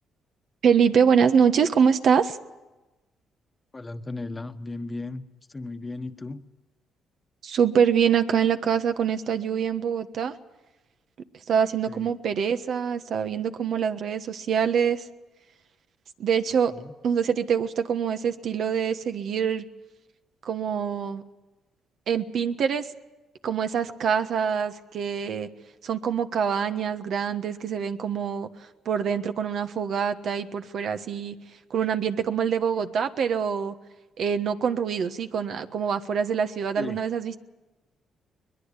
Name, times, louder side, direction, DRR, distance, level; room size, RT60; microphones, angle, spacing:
voice 1, 0.6-2.4 7.4-10.4 11.5-15.1 16.2-16.7 17.0-19.6 20.4-21.2 22.1-22.9 23.4-25.5 25.8-28.5 28.8-31.3 31.7-33.7 34.2-37.4, right 7 dB, 65° right, 8 dB, 1.3 m, -24 dB
voice 2, 3.7-5.2 5.5-6.4 11.9-12.1 16.7-16.9 26.5-26.8 36.8-37.0, left 2 dB, 20° left, 9 dB, 1.3 m, -36 dB
22.5 x 21.0 x 8.3 m, 1.1 s
cardioid pair, 85°, 0 cm